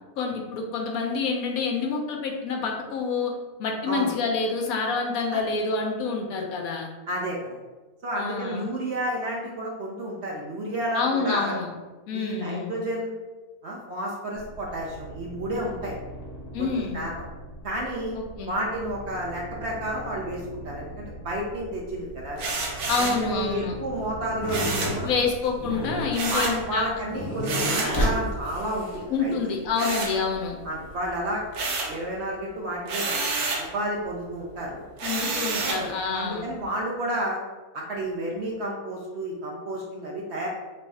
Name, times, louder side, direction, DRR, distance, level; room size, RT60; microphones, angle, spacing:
voice 1, 0.2-3.3 3.6-6.9 8.2-8.7 10.9-11.7 12.1-12.7 16.5-17.0 18.1-18.5 22.9-23.7 25.0-26.9 29.1-30.6 35.0-36.5, left 4 dB, 75° left, 1 dB, 1.0 m, -27 dB
voice 2, 7.1-7.6 8.0-11.6 12.1-13.1 13.6-15.9 16.6-17.3 17.6-18.2 18.5-22.4 23.0-25.2 26.2-29.5 30.6-31.4 31.8-33.2 33.7-34.8 35.6-35.9 36.1-37.4 37.7-40.5, right 1 dB, 60° right, -2 dB, 0.8 m, -31 dB
sound 1, 14.3-28.6, right 1 dB, 55° left, 0.8 m, -42 dB
sound 2, 22.4-23.3 24.5-25.0 26.1-26.6 27.4-28.0 29.7-30.6 31.0-32.0 32.9-33.7 35.0-35.9, right 3 dB, 85° right, 1.2 m, -29 dB
sound 3, 24.4-29.3 30.0-30.9, equal, 25° left, 0.9 m, -30 dB
3.2 x 2.3 x 4.0 m, 1.2 s
omnidirectional pair, 1.5 m